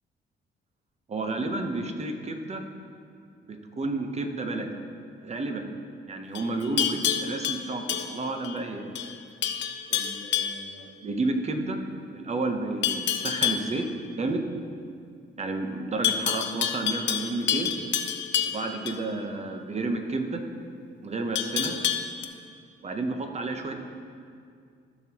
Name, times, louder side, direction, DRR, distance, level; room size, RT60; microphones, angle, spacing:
voice 1, 1.1-2.6 3.4-4.7 5.2-5.7 6.1-8.9 9.9-11.8 12.1-13.9 14.1-14.5 15.4-17.8 18.4-20.4 21.0-21.8 22.8-23.8, right 2 dB, 35° right, 5 dB, 0.9 m, -31 dB
Livestock farm animals working animals, 6.3-8.6 9.0-9.2 9.4-10.7 12.8-13.7 16.0-19.0 21.4-22.3, left 9 dB, 65° left, 0.6 m, -28 dB
14.5 x 6.1 x 2.9 m, 2.3 s
cardioid pair, 90°, 20 cm